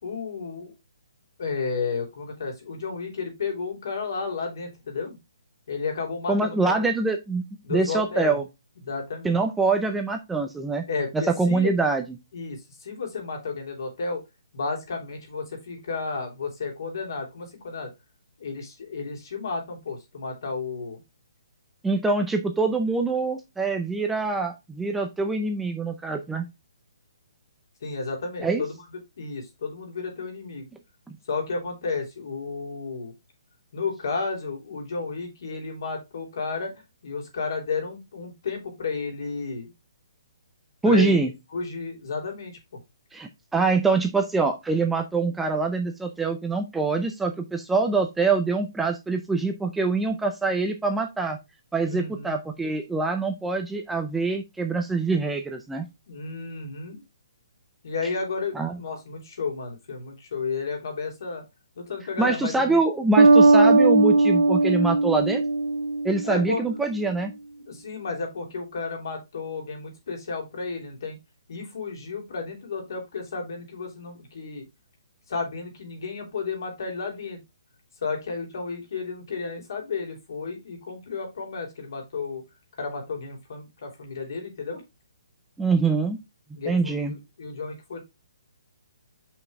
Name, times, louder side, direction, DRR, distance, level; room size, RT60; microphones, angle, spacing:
voice 1, 0.0-0.7 1.4-5.2 5.7-6.9 7.6-8.4 8.8-9.4 10.9-11.7 12.3-14.2 14.5-17.9 18.4-21.0 27.8-28.8 29.2-30.7 31.3-33.1 33.7-36.7 37.0-39.7 40.8-41.2 41.5-42.8 51.9-52.4 56.1-57.0 57.8-61.4 61.7-62.8 66.2-66.6 67.6-71.2 71.5-74.6 75.3-77.4 78.0-82.4 82.8-84.8 86.5-88.0, left 4 dB, 55° left, 3 dB, 3.2 m, -32 dB
voice 2, 6.3-7.4 7.7-8.4 9.2-10.8 11.1-12.0 21.8-26.5 28.4-28.6 40.8-41.3 43.1-51.4 51.7-55.9 58.6-58.8 62.2-65.4 66.0-67.3 85.6-86.2 86.7-87.1, right 3 dB, 5° right, 4 dB, 0.5 m, -24 dB
Bass guitar, 63.2-66.7, right 3 dB, 55° right, 0.7 m, -18 dB
6.0 x 5.6 x 3.6 m, 0.22 s
hypercardioid pair, 170°, 2 cm